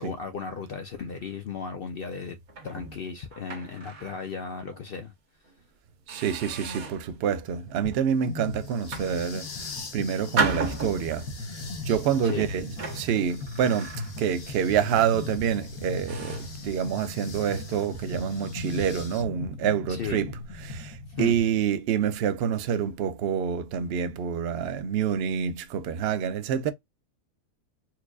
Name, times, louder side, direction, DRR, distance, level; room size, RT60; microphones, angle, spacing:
voice 1, 0.0-2.4 2.6-5.1 11.9-12.5 19.9-20.2 21.2-21.4, left 6 dB, 65° left, 0.6 m, -35 dB
sound 1, 2.5-4.3 4.7-4.9 5.5-5.6 6.1-7.1 7.7-8.0 8.7-9.7 10.4-11.4 12.1-14.5 14.8-15.1 15.6-15.7 16.1-16.6, right 4 dB, 85° right, 1.7 m, -34 dB
sound 2, 6.1-19.2, left 4 dB, 45° left, 1.0 m, -46 dB
voice 2, 6.1-9.5 9.9-11.3 11.9-12.7 12.9-13.9 14.2-20.3 20.6-26.7, right 8 dB, 60° right, 0.7 m, -27 dB
sound 3, 7.8-8.0 8.3-21.6, left 2 dB, 80° left, 1.4 m, -38 dB
4.5 x 2.4 x 2.3 m
omnidirectional pair, 1.4 m